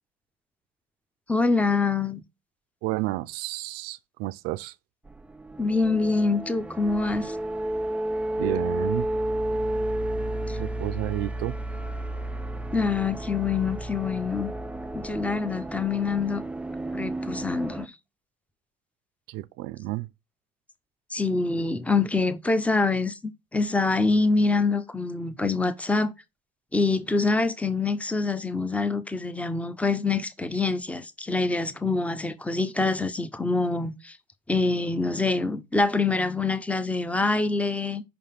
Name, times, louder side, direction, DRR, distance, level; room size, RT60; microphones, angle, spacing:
voice 1, 1.3-2.2 5.6-7.4 10.5-10.6 12.7-14.5 14.9-16.4 16.9-17.9 21.1-23.2 23.5-26.1 26.7-34.2 34.5-38.0, left 3 dB, 10° left, 0.8 m, -25 dB
voice 2, 2.8-4.7 8.4-9.1 10.6-11.6 19.3-20.1, right 18 dB, 90° right, 0.4 m, -31 dB
sound 1, 5.1-17.9, right 1 dB, 10° right, 0.4 m, -32 dB
5.7 x 3.4 x 5.8 m
cardioid pair, 90°, 16 cm